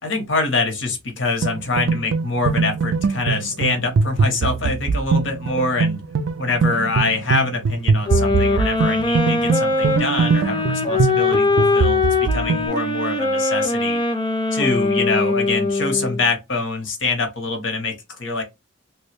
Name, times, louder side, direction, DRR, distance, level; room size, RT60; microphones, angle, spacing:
voice 1, 0.0-6.0 6.4-12.0 12.3-14.0 14.5-18.4, left 3 dB, 90° left, 1.2 m, -24 dB
sound 1, 1.4-12.7, right 4 dB, 80° right, 0.4 m, -22 dB
sound 2, 8.1-16.3, left 3 dB, 25° left, 0.6 m, -21 dB
3.1 x 2.3 x 3.2 m
head